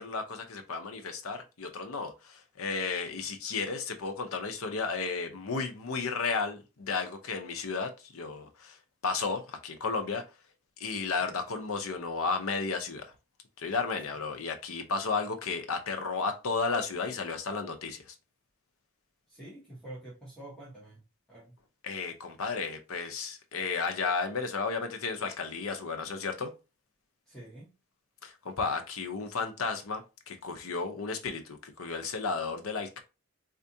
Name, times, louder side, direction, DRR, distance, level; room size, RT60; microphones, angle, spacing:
voice 1, 0.0-8.8 9.0-10.2 10.8-13.1 13.6-18.0 21.8-26.5 28.2-33.0, left 4 dB, 90° left, 0.7 m, -33 dB
voice 2, 19.3-21.0 21.3-21.5 27.3-27.7, right 1 dB, 5° left, 1.1 m, -47 dB
4.3 x 2.4 x 2.7 m
head